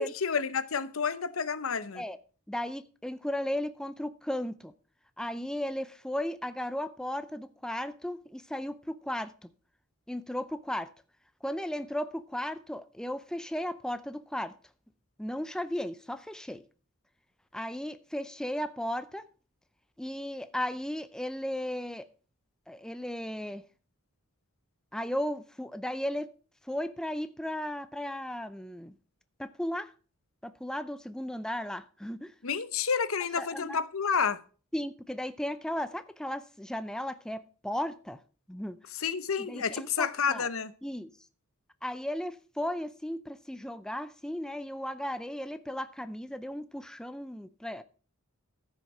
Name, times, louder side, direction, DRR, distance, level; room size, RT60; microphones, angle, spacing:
voice 1, 0.0-2.0 32.4-34.4 39.0-40.7, left 6 dB, 65° left, 0.8 m, -30 dB
voice 2, 2.5-4.7 5.2-9.3 10.1-10.9 11.4-14.5 15.2-16.6 17.5-19.2 20.0-22.1 22.7-23.6 24.9-26.3 26.7-28.9 29.4-29.9 30.4-32.3 33.3-33.8 34.7-38.2 38.5-38.8 39.4-40.5 40.8-41.1 41.8-47.8, left 1 dB, 5° left, 0.5 m, -35 dB
14.5 x 6.5 x 4.8 m
head